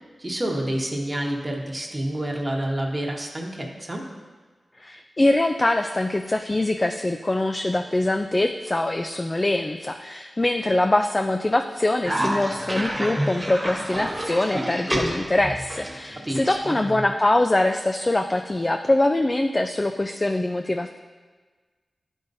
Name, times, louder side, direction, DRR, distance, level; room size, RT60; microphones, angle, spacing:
voice 1, 0.2-4.1 16.2-16.7, right 1 dB, 30° right, -1 dB, 1.0 m, -28 dB
voice 2, 4.8-21.0, left 2 dB, 30° left, 5 dB, 0.4 m, -23 dB
Cough, 12.0-17.1, right 1 dB, 10° right, 1.2 m, -29 dB
11.0 x 5.3 x 2.7 m, 1.4 s
cardioid pair, 55°, 0 cm